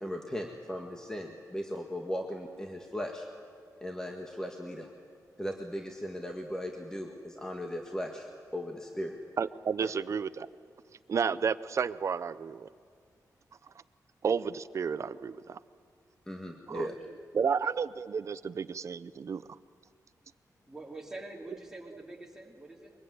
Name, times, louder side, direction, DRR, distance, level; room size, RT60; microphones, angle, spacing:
voice 1, 0.0-3.3 3.8-4.9 5.4-9.2 9.8-9.9 16.3-16.9, equal, 10° left, 2 dB, 1.7 m, -37 dB
voice 2, 9.4-10.5 11.1-12.7 14.2-15.6 16.7-16.9 17.3-19.4, right 6 dB, 50° right, 15 dB, 0.6 m, -31 dB
voice 3, 20.7-22.9, right 2 dB, 5° right, -1 dB, 3.2 m, -45 dB
23.5 x 22.0 x 9.5 m, 2.1 s
wide cardioid pair, 160°, 7 cm